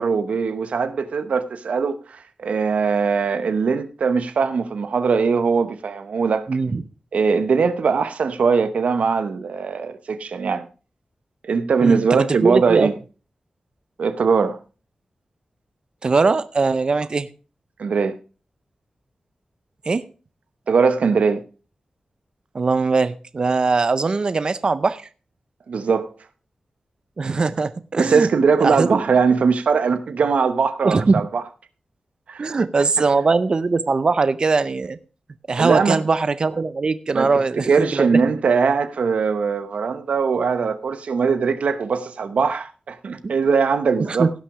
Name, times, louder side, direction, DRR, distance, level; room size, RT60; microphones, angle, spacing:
voice 1, 0.0-6.5 7.1-10.7 11.4-12.9 14.0-14.6 17.8-18.2 20.7-21.4 25.7-26.1 28.0-31.4 32.3-32.5 35.6-36.0 37.1-37.3 37.6-44.3, right 5 dB, 85° right, 0.8 m, -20 dB
voice 2, 6.5-6.8 11.8-12.9 16.0-17.3 19.9-20.0 22.5-25.0 27.2-28.3 28.6-29.0 30.8-31.3 32.4-35.0 35.5-38.1 43.2-43.4 44.1-44.3, right 4 dB, 40° right, 0.5 m, -20 dB
16.5 x 6.1 x 4.8 m
wide cardioid pair, 145°, 2 cm